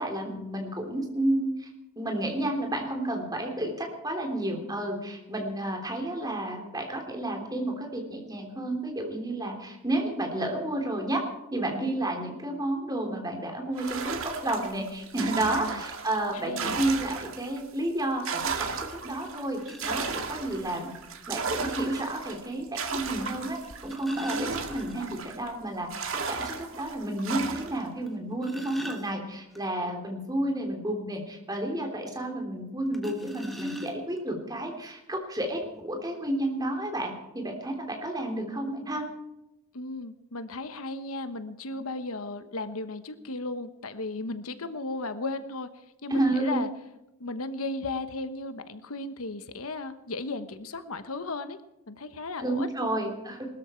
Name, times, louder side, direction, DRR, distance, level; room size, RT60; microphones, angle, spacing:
voice 1, 0.0-1.7 2.0-11.2 11.5-20.9 21.3-39.0 46.1-46.6 52.4-53.5, right 1 dB, 15° right, 2 dB, 3.3 m, -31 dB
sound 1, 13.8-17.6 18.0-25.5 25.9-27.9, right 5 dB, 65° right, 1.9 m, -35 dB
voice 2, 16.3-16.9 39.7-45.7 46.0-46.7 47.2-51.6 51.9-52.9, left 2 dB, 75° left, 11 dB, 1.1 m, -35 dB
sound 2, 19.6-20.3 21.6-21.7 23.5-25.3 25.6-25.7 26.1-26.2 26.7-26.8 28.1-29.6 32.9-34.3 35.2-35.3 35.6-35.8, left 1 dB, ahead, 1.5 m, -38 dB
21.0 x 13.0 x 4.5 m, 0.92 s
head